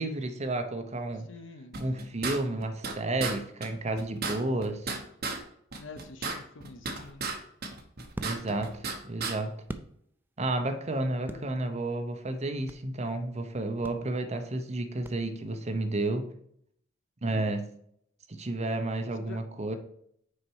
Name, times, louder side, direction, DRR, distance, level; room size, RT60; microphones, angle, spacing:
voice 1, 0.0-1.3 1.8-4.9 8.2-9.5 10.4-16.3 17.2-17.6 18.3-19.8, right 2 dB, 35° right, 6 dB, 0.8 m, -31 dB
voice 2, 1.3-2.3 5.8-7.3 11.2-11.4 17.3-17.5 19.3-19.4, left 3 dB, 70° left, 9 dB, 0.7 m, -47 dB
sound 1, 1.7-2.9 3.2-3.4 3.6-3.7 4.0-5.4 5.7-7.4 7.6-9.0 9.2-9.3, right 4 dB, 55° right, 1.1 m, -33 dB
sound 2, 7.1-10.5 10.8-13.0 13.3-13.5 13.8-15.6, right 1 dB, 10° right, 0.4 m, -45 dB
6.4 x 4.4 x 4.6 m, 0.69 s
head